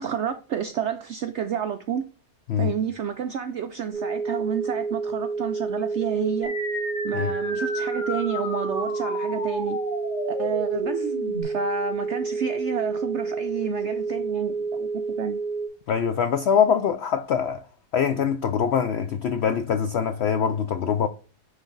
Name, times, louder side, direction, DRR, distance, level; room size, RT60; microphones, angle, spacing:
voice 1, 0.0-2.0 2.6-6.5 7.0-9.8 10.4-11.1 11.4-15.4, right 7 dB, 75° right, 0.6 m, -30 dB
sound 1, 3.9-15.7, right 4 dB, 30° left, 3.1 m, -29 dB
sound 2, 6.4-11.4, left 1 dB, 65° left, 3.0 m, -33 dB
voice 2, 15.9-17.6 17.9-21.1, left 7 dB, 80° left, 0.5 m, -23 dB
9.6 x 3.3 x 3.9 m
omnidirectional pair, 1.7 m